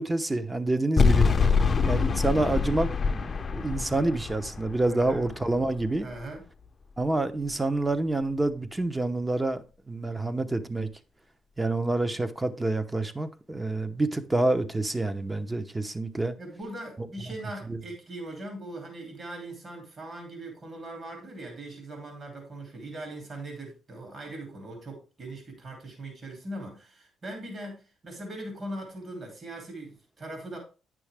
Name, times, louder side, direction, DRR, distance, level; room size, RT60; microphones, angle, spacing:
voice 1, 0.0-1.3 1.9-6.1 7.0-10.9 11.6-16.4, right 2 dB, 15° right, 0.8 m, -28 dB
sound 1, 1.0-6.1, left 5 dB, 35° left, 0.6 m, -25 dB
voice 2, 4.9-5.3 6.0-6.4 16.4-30.6, right 1 dB, 40° right, 2.8 m, -40 dB
9.6 x 6.2 x 3.4 m
cardioid pair, 90°, 0 cm